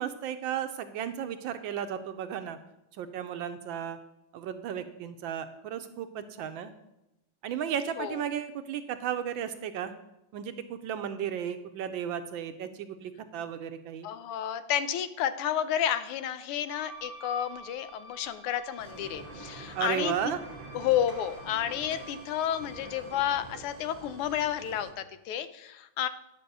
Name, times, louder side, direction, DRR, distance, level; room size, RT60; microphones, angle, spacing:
voice 1, 0.0-2.6 3.0-4.0 4.3-6.7 7.4-9.9 10.3-14.1 19.7-20.4, right 9 dB, 75° right, 9 dB, 1.2 m, -34 dB
voice 2, 14.0-20.2 20.7-26.1, left 10 dB, 85° left, 13 dB, 1.6 m, -31 dB
Wind instrument woodwind instrument, 16.6-23.4, right 2 dB, 60° left, 4.8 m, -49 dB
sound 1, 18.8-24.9, right 2 dB, 40° right, 0.6 m, -46 dB
10.5 x 5.4 x 6.7 m, 0.91 s
omnidirectional pair, 2.4 m